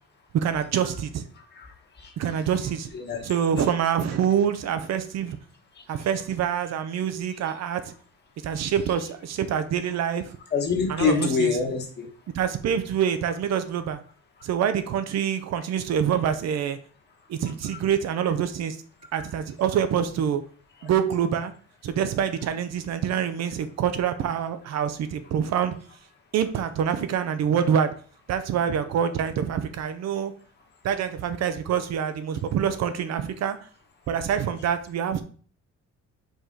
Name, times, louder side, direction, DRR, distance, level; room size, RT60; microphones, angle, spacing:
voice 1, 0.3-1.2 2.2-2.9 3.2-5.4 5.9-7.9 8.4-10.4 10.9-11.5 12.3-14.0 14.4-16.8 17.3-18.8 19.1-20.4 20.8-21.5 21.8-25.8 26.3-27.9 28.3-30.3 30.8-33.6 34.1-35.2, right 8 dB, 65° right, 10 dB, 0.7 m, -26 dB
voice 2, 1.4-1.7 2.0-2.1 2.9-3.2 5.9-6.0 10.5-12.1, left 5 dB, 35° left, 2 dB, 1.4 m, -25 dB
5.1 x 4.8 x 3.8 m, 0.43 s
cardioid pair, 165°, 29 cm